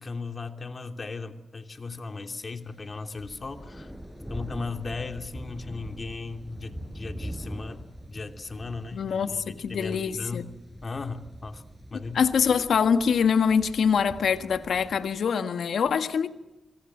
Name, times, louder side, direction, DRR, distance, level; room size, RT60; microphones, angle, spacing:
voice 1, 0.0-3.9 4.3-10.5 10.8-11.6 11.9-12.3, left 4 dB, 50° left, 2.8 m, -37 dB
sound 1, 2.5-15.2, equal, 5° right, 6.8 m, -43 dB
voice 2, 8.9-10.4 11.9-16.3, left 6 dB, 80° left, 1.5 m, -24 dB
25.5 x 24.0 x 7.6 m
cardioid pair, 50°, 0 cm